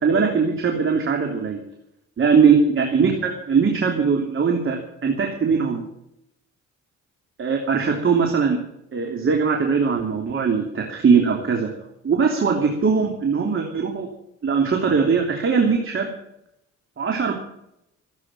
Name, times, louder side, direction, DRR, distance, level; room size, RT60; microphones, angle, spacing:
voice 1, 0.0-1.6 2.2-5.8 7.4-8.6 8.9-11.7 12.0-14.1 14.4-16.1 17.0-17.3, right 5 dB, 45° right, 2 dB, 3.2 m, -20 dB
16.5 x 8.8 x 7.7 m, 0.80 s
cardioid pair, 90°, 30 cm